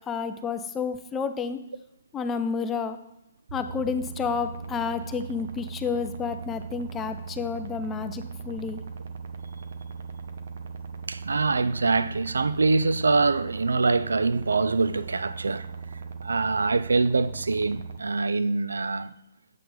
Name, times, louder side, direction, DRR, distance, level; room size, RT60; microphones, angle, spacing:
voice 1, 0.1-1.6 2.1-3.0 3.5-8.8, left 5 dB, 15° left, 0.4 m, -30 dB
sound 1, 3.5-18.0, right 5 dB, 60° right, 0.7 m, -39 dB
voice 2, 11.1-15.7 16.2-19.1, right 3 dB, 85° right, 0.4 m, -24 dB
7.7 x 5.7 x 3.7 m
hypercardioid pair, 140°, 0 cm